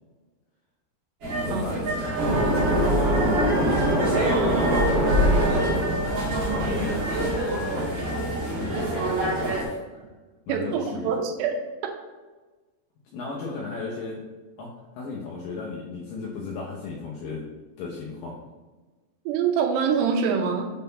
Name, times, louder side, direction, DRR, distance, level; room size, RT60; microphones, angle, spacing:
sound 1, 1.2-9.6, right 2 dB, 50° right, 1.5 m, -27 dB
voice 1, 1.5-4.2 4.5-5.9 6.4-9.8 10.5-11.1 13.1-14.2 14.6-17.4 17.8-18.4, left 4 dB, 75° left, -4 dB, 2.0 m, -35 dB
sound 2, 2.2-7.3, equal, 70° right, 1.4 m, -23 dB
voice 2, 10.5-11.6 19.3-20.7, right 6 dB, 85° right, 4 dB, 2.8 m, -24 dB
6.6 x 3.8 x 4.0 m, 1.2 s
omnidirectional pair, 4.8 m